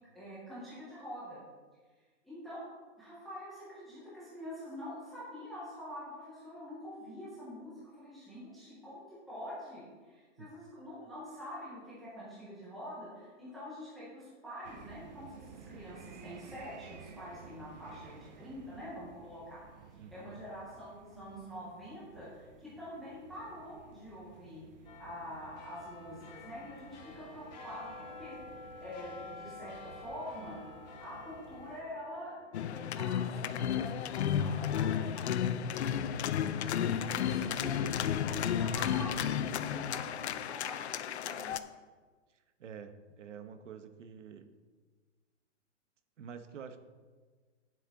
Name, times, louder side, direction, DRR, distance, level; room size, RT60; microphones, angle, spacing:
voice 1, 0.0-1.4 2.2-2.7 3.0-19.6 19.9-24.6 25.0-30.6 31.0-36.3 36.7-41.5, equal, ahead, -10 dB, 0.5 m, -46 dB
sound 1, 14.6-31.8, right 6 dB, 35° right, 0.7 m, -55 dB
voice 2, 20.0-20.4 37.3-37.5 42.3-44.5 46.2-46.8, right 7 dB, 75° right, 9 dB, 1.0 m, -48 dB
sound 2, 24.9-35.6 36.0-36.1, left 3 dB, 35° left, 1.5 m, -51 dB
sound 3, 32.5-41.6, left 9 dB, 60° left, 0.5 m, -32 dB
9.4 x 7.5 x 4.0 m, 1.4 s
hypercardioid pair, 170°, 37 cm